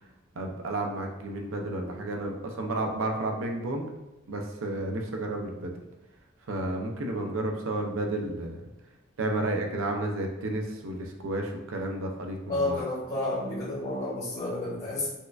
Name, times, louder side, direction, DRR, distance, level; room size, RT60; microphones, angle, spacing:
voice 1, 0.4-3.8 4.3-5.7 6.5-8.6 9.2-12.8, right 2 dB, 85° right, 2 dB, 0.5 m, -31 dB
voice 2, 12.5-15.1, left 2 dB, 30° left, -7 dB, 0.7 m, -30 dB
4.1 x 2.4 x 2.4 m, 0.99 s
head